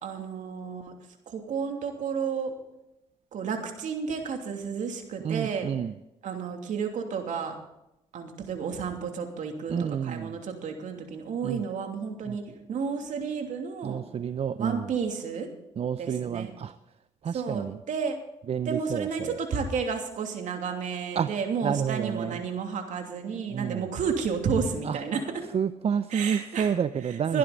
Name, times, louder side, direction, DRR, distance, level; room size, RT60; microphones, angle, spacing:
voice 1, 0.0-0.9 1.3-2.5 3.3-5.7 6.2-7.5 8.1-9.7 10.0-14.0 14.6-15.5 16.0-16.5 17.3-18.2 18.7-25.2 26.1-26.7 27.3-27.4, right 6 dB, 65° right, 4 dB, 2.8 m, -31 dB
voice 2, 5.2-5.9 9.7-10.4 11.4-11.6 12.3-12.4 13.8-14.9 15.8-16.7 17.2-17.8 18.5-19.4 21.1-21.3 21.6-22.4 23.5-23.9 24.8-25.0 25.5-27.4, right 7 dB, 50° right, 12 dB, 0.6 m, -29 dB
22.0 x 11.5 x 4.0 m, 0.88 s
supercardioid pair, 60°, 14 cm